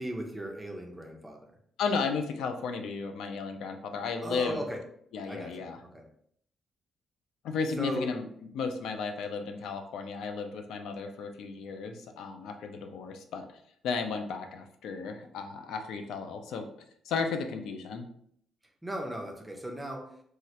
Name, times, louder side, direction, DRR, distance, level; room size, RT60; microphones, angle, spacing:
voice 1, 0.0-1.5 4.2-4.8 5.3-6.0 7.8-8.1 18.8-20.2, right 1 dB, 5° right, 2 dB, 0.4 m, -37 dB
voice 2, 1.8-4.6 5.1-5.8 7.4-8.3 8.5-13.6 13.8-16.7 17.0-18.1, left 5 dB, 80° left, 6 dB, 0.4 m, -34 dB
3.1 x 2.3 x 2.8 m, 0.66 s
cardioid pair, 175°, 0 cm